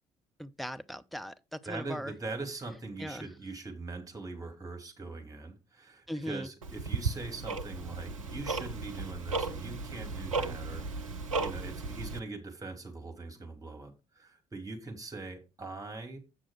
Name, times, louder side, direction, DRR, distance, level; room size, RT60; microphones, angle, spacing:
voice 1, 0.4-2.1 3.0-3.2 6.1-6.5, equal, ahead, 0.6 m, -39 dB
voice 2, 1.6-16.2, right 3 dB, 20° right, 3.0 m, -42 dB
Tick-tock, 6.6-12.2, right 4 dB, 85° right, 0.6 m, -35 dB
8.4 x 6.2 x 4.6 m
figure-of-eight pair, 50°, 16 cm